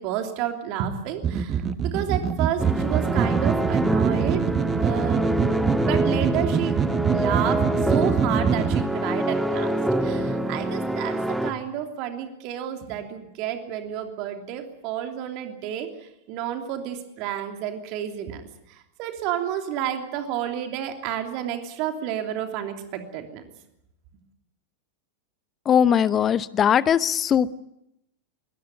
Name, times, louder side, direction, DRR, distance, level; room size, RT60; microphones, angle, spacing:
voice 1, 0.0-4.4 4.8-5.3 5.9-6.8 7.1-15.9 16.3-23.4, right 10 dB, 45° right, 5 dB, 3.1 m, -31 dB
sound 1, 1.2-8.8, right 7 dB, 25° right, 1.1 m, -24 dB
sound 2, 2.6-11.5, right 1 dB, ahead, 1.5 m, -26 dB
voice 2, 25.7-27.6, left 8 dB, 25° left, 18 dB, 0.8 m, -20 dB
22.0 x 18.0 x 9.4 m, 0.85 s
figure-of-eight pair, 90°, 0 cm